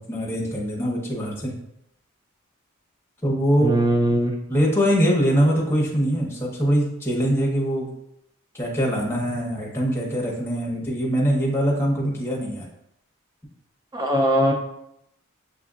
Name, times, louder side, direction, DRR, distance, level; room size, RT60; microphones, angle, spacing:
voice 1, 0.1-1.5 3.2-3.8 4.5-7.9 8.6-12.7, equal, 10° left, -3 dB, 0.8 m, -23 dB
voice 2, 3.6-4.3 13.9-14.5, right 1 dB, 20° right, 1 dB, 0.4 m, -20 dB
6.9 x 2.5 x 2.4 m, 0.78 s
head